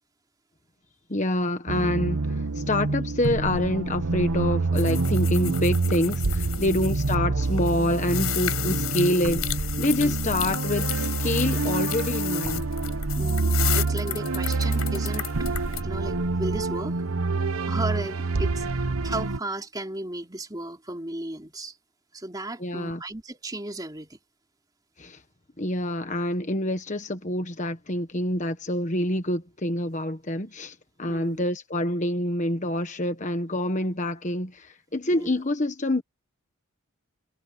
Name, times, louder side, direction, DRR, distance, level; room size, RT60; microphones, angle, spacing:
voice 1, 1.1-2.2 2.5-12.6 22.6-23.0 25.0-25.2 25.6-36.0, left 1 dB, 35° left, 1.3 m, -27 dB
sound 1, 1.7-19.4, right 3 dB, 75° right, 0.9 m, -27 dB
sound 2, 4.7-7.1 7.4-15.8, left 13 dB, 80° left, 5.5 m, -33 dB
voice 2, 6.7-7.0 10.0-10.2 13.2-15.5 15.8-16.9 17.4-21.8 22.1-24.2 31.1-31.4 35.1-35.3, right 1 dB, 15° right, 3.3 m, -35 dB
head